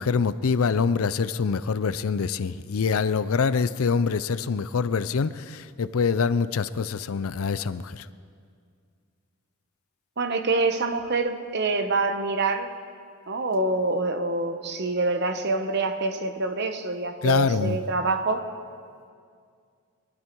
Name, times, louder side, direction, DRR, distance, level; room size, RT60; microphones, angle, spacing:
voice 1, 0.0-8.1 17.2-17.8, left 5 dB, 70° left, 16 dB, 0.5 m, -25 dB
voice 2, 10.2-12.7 13.3-18.5, right 3 dB, 50° right, 8 dB, 1.0 m, -26 dB
23.0 x 12.5 x 4.6 m, 2.2 s
head